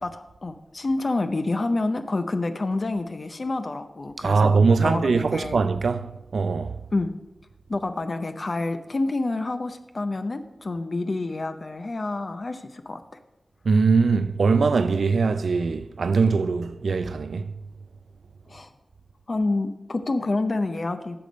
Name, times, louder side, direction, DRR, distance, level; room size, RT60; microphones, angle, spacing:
voice 1, 0.0-5.6 6.9-7.1 7.7-13.0 18.5-18.7 19.3-21.2, left 2 dB, 45° left, 0.5 m, -28 dB
voice 2, 4.2-6.8 13.6-17.5, right 4 dB, 85° right, 0.4 m, -22 dB
11.5 x 6.8 x 5.1 m
wide cardioid pair, 100°, 0 cm